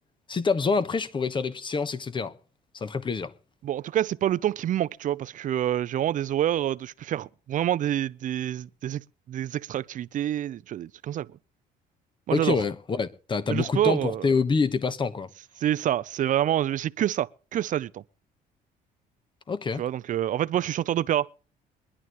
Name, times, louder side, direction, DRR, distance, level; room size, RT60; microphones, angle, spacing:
voice 1, 0.3-2.3 2.7-3.3 12.3-15.3 19.5-19.8, left 4 dB, 30° left, 1.1 m, -26 dB
voice 2, 3.6-11.4 12.3-12.6 13.5-14.3 15.6-18.0 19.8-21.3, right 11 dB, 50° right, 0.5 m, -27 dB
22.5 x 11.0 x 3.0 m
cardioid pair, 110°, 17 cm